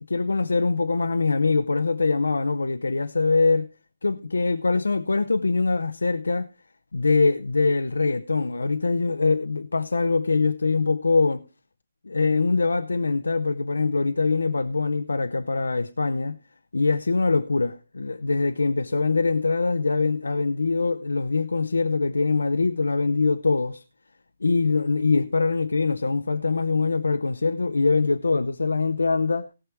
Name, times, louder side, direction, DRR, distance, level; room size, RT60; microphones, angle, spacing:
voice 1, 0.1-3.7 4.0-6.5 6.9-11.5 12.0-16.4 16.7-23.8 24.4-29.5, left 3 dB, 80° left, 0.6 m, -23 dB
17.5 x 6.7 x 4.5 m
figure-of-eight pair, 140°, 0 cm